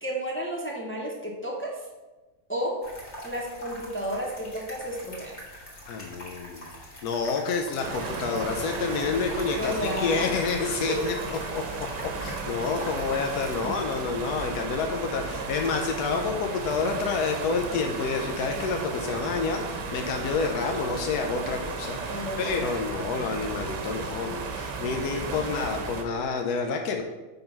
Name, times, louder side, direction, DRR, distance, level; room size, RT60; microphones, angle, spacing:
voice 1, 0.0-1.8 2.5-2.8 3.2-5.4 9.4-10.3 10.9-11.0 22.1-22.8, equal, 10° left, -2 dB, 0.6 m, -32 dB
sound 1, 2.8-13.6, left 1 dB, 40° left, 1.7 m, -43 dB
voice 2, 5.9-27.0, left 4 dB, 70° left, 3 dB, 1.1 m, -29 dB
sound 2, 7.8-26.0, right 4 dB, 85° right, 1.4 m, -34 dB
5.3 x 3.7 x 5.8 m, 1.2 s
omnidirectional pair, 1.8 m